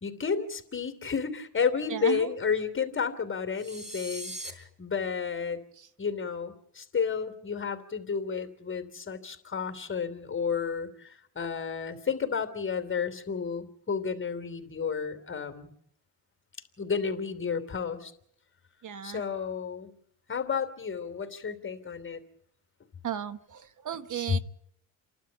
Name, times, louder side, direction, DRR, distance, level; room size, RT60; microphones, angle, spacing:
voice 1, 0.0-5.6 6.0-15.7 16.8-18.1 19.0-19.9 20.3-22.2, left 6 dB, 30° left, 7 dB, 3.0 m, -32 dB
voice 2, 1.9-2.3 5.8-5.9 18.8-19.2 23.0-24.4, right 9 dB, 50° right, 11 dB, 1.2 m, -35 dB
sound 1, 3.6-4.5, right 1 dB, 20° right, 5.7 m, -40 dB
29.5 x 12.0 x 9.0 m, 0.71 s
cardioid pair, 115°, 39 cm